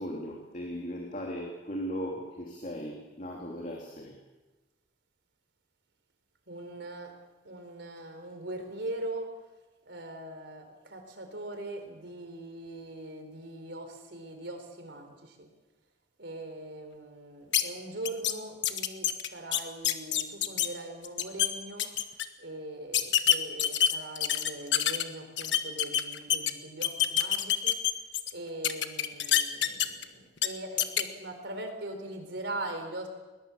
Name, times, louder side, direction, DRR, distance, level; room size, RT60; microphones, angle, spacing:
voice 1, 0.0-4.1, equal, 40° left, -1 dB, 3.1 m, -37 dB
voice 2, 6.5-7.1 7.4-9.3 9.8-15.5 16.2-21.9 22.4-27.8 28.3-33.1, right 1 dB, 65° right, 6 dB, 4.4 m, -41 dB
sound 1, 17.5-17.6 18.1-18.3 18.6-20.7 21.0-21.5 21.8-22.3 22.9-25.0 25.4-26.5 26.8-28.3 28.6-30.0 30.4-30.5 30.8-31.0, left 10 dB, 70° left, 1.4 m, -26 dB
21.0 x 20.5 x 7.3 m, 1.2 s
head